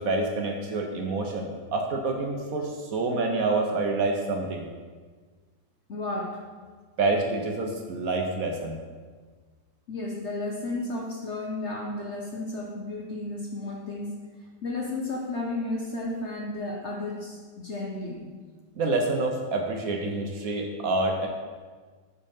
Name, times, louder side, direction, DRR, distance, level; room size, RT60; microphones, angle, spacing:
voice 1, 0.0-4.6 7.0-8.8 18.8-21.3, right 2 dB, 60° right, 2 dB, 1.1 m, -27 dB
voice 2, 5.9-6.4 9.9-14.2 14.6-18.3, left 2 dB, 50° left, -1 dB, 0.9 m, -33 dB
8.7 x 4.3 x 5.5 m, 1.5 s
omnidirectional pair, 1.9 m